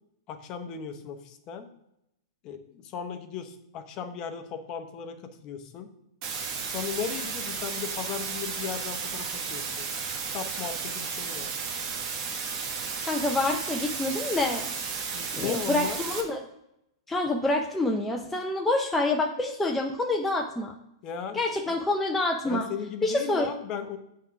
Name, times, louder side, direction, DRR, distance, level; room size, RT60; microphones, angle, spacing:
voice 1, 0.3-1.7 2.4-5.2 5.4-5.9 6.7-9.9 10.3-11.5 15.1-16.0 21.0-21.5 22.4-24.0, left 7 dB, 30° left, 7 dB, 0.9 m, -36 dB
sound 1, 6.2-16.2, right 5 dB, 35° right, 1.3 m, -33 dB
voice 2, 13.1-14.7 15.3-16.4 17.1-20.7 21.3-22.7 23.0-23.5, left 2 dB, 5° left, 1 dB, 0.5 m, -27 dB
7.8 x 3.7 x 5.7 m, 0.81 s
hypercardioid pair, 155°, 3 cm